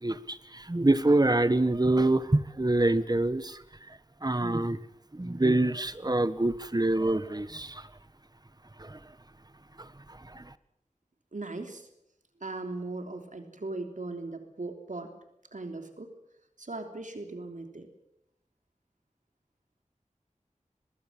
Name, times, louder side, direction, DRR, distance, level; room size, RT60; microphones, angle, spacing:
voice 1, 0.0-3.6 3.9-4.8 5.1-7.9 8.8-9.0 9.8-10.5, right 2 dB, 30° right, 14 dB, 1.4 m, -26 dB
voice 2, 11.3-11.9 12.4-15.1 15.5-16.2 16.6-17.9, right 2 dB, 90° right, 5 dB, 3.3 m, -38 dB
24.0 x 20.5 x 7.5 m, 0.78 s
wide cardioid pair, 55°, 13 cm